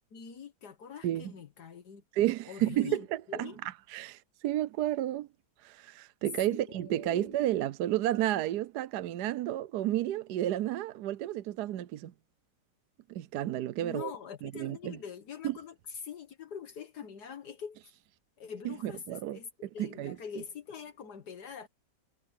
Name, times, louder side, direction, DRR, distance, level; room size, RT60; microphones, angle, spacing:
voice 1, 0.1-2.0 2.5-3.6 6.5-7.4 13.8-15.8 16.0-17.8 18.4-19.5 19.7-21.7, left 7 dB, 65° left, 1.8 m, -44 dB
voice 2, 2.1-5.3 5.6-12.1 13.1-14.1 14.4-15.0 15.4-15.6 18.6-20.2, right 13 dB, 70° right, 1.2 m, -32 dB
omnidirectional pair, 1.8 m